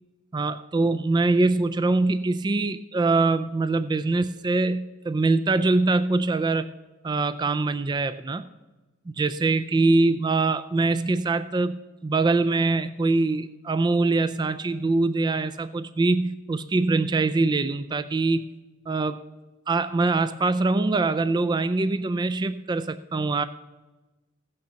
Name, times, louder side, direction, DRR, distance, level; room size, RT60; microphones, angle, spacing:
voice 1, 0.3-6.7 7.0-8.4 9.2-18.5 18.9-19.2 19.7-23.4, right 3 dB, 20° right, 13 dB, 0.3 m, -23 dB
16.0 x 6.6 x 6.9 m, 1.2 s
head